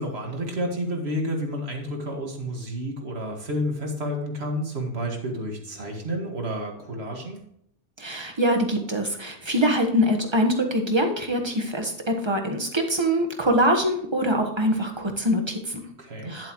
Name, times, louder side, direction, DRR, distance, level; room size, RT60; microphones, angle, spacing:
voice 1, 0.0-7.4 16.0-16.4, equal, 60° right, 2 dB, 2.2 m, -30 dB
voice 2, 8.0-15.8 16.3-16.5, equal, 25° right, 3 dB, 1.4 m, -24 dB
11.0 x 7.7 x 3.1 m, 0.70 s
omnidirectional pair, 1.2 m